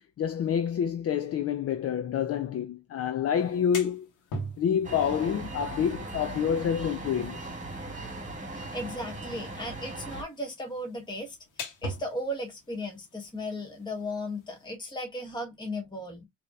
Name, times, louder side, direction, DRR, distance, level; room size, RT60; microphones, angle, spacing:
voice 1, 0.0-4.1 4.6-7.4, left 8 dB, 50° left, 0.6 m, -28 dB
sound 1, 3.4-14.7, equal, 90° left, 1.3 m, -44 dB
sound 2, 4.8-10.2, right 2 dB, 25° right, 1.8 m, -39 dB
voice 2, 8.5-16.3, left 1 dB, 15° left, 1.5 m, -36 dB
4.8 x 3.0 x 2.3 m
cardioid pair, 90°, 30 cm